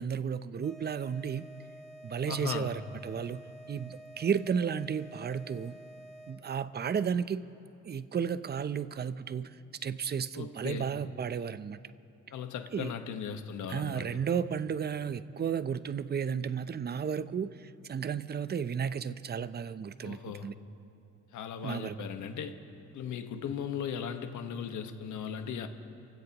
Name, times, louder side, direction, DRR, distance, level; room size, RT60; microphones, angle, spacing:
voice 1, 0.0-1.5 2.0-3.4 3.7-5.7 6.3-7.4 7.8-9.5 9.8-11.8 12.7-12.9 13.7-20.5 21.6-21.9, right 7 dB, 35° right, 14 dB, 0.6 m, -33 dB
sound 1, 0.6-6.6, right 1 dB, ahead, 2.3 m, -50 dB
voice 2, 2.3-2.7 10.3-10.9 12.3-14.2 20.0-20.5 21.3-22.5 22.9-25.7, left 7 dB, 75° left, 7 dB, 1.4 m, -37 dB
29.5 x 16.0 x 3.0 m, 2.8 s
cardioid pair, 90°, 30 cm